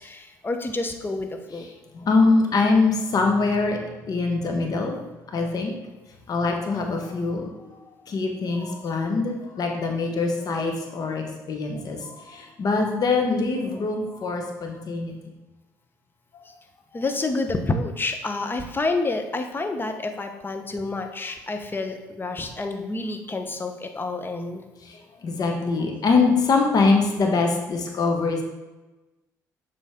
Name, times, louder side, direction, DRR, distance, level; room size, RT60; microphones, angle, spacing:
voice 1, 0.0-1.7 16.4-16.5 16.9-24.7, left 3 dB, 25° left, 6 dB, 1.0 m, -29 dB
voice 2, 1.9-3.8 4.1-5.0 5.3-5.7 6.3-7.5 8.1-15.1 25.2-28.4, left 3 dB, 50° left, 2 dB, 1.5 m, -23 dB
7.4 x 5.1 x 3.8 m, 1.1 s
hypercardioid pair, 60°, 8 cm